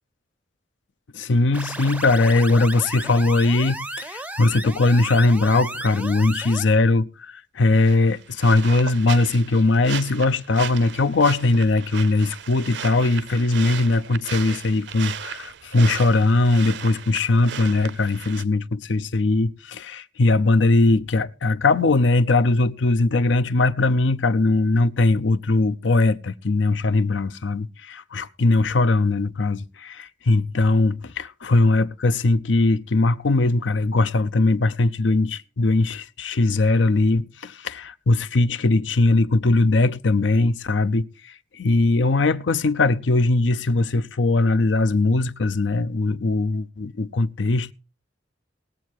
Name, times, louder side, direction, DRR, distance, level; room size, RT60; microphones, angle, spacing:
voice 1, 1.1-47.7, left 2 dB, 80° left, 0.6 m, -20 dB
sound 1, 1.5-6.7, right 2 dB, 10° right, 0.5 m, -34 dB
sound 2, 7.8-18.4, right 8 dB, 70° right, 0.6 m, -36 dB
19.5 x 7.5 x 4.6 m
head